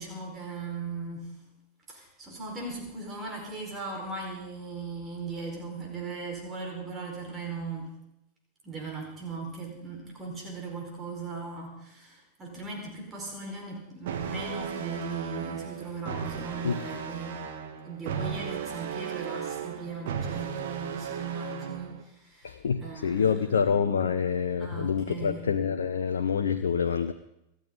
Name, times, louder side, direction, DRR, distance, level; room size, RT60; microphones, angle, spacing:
voice 1, 0.0-1.3 1.9-7.9 8.6-17.4 17.8-23.4 24.6-25.5, right 3 dB, 20° right, 0 dB, 4.9 m, -38 dB
sound 1, 14.0-22.0, right 7 dB, 55° right, 2.7 m, -36 dB
voice 2, 22.4-27.1, left 6 dB, 65° left, 8 dB, 1.0 m, -27 dB
27.0 x 13.0 x 4.1 m, 0.82 s
figure-of-eight pair, 90°, 0 cm